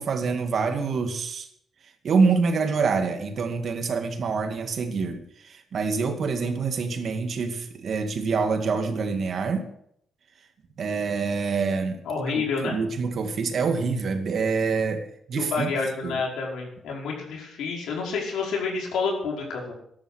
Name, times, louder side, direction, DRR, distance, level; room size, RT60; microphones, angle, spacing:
voice 1, 0.0-1.5 2.0-9.6 10.8-12.0 12.3-15.7 16.0-16.2, right 4 dB, 55° right, 6 dB, 2.3 m, -26 dB
voice 2, 12.0-12.8 15.3-19.7, left 4 dB, 85° left, -1 dB, 5.2 m, -29 dB
14.5 x 11.0 x 6.6 m, 0.72 s
cardioid pair, 115°, 0 cm